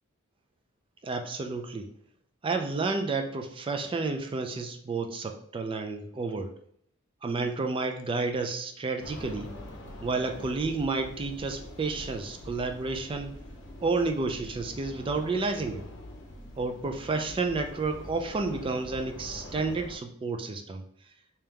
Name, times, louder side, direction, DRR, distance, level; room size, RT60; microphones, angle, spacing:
voice 1, 1.0-1.9 2.4-6.5 7.2-9.5 10.0-13.3 13.8-15.8 16.6-20.8, right 3 dB, 25° right, 6 dB, 0.3 m, -31 dB
sound 1, 9.0-20.0, left 1 dB, 60° left, 0.7 m, -44 dB
3.3 x 2.9 x 3.6 m, 0.66 s
head